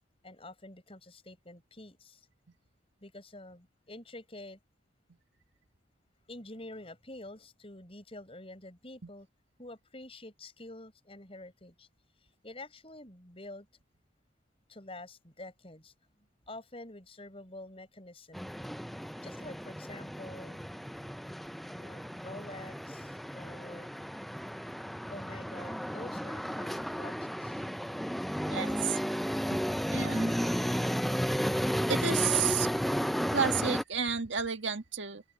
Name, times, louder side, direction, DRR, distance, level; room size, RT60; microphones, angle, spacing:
voice 1, 0.2-2.3 3.0-4.6 6.3-9.3 9.6-11.9 12.4-13.7 14.7-15.9 16.5-18.6 19.2-20.6 21.8-23.9 25.1-27.7, left 2 dB, 30° left, 7.3 m, -47 dB
sound 1, 18.3-33.8, equal, ahead, 0.5 m, -33 dB
voice 2, 28.5-29.0 29.5-29.6 29.9-30.3 31.9-32.7 33.3-35.2, right 7 dB, 75° right, 1.8 m, -31 dB
open air
head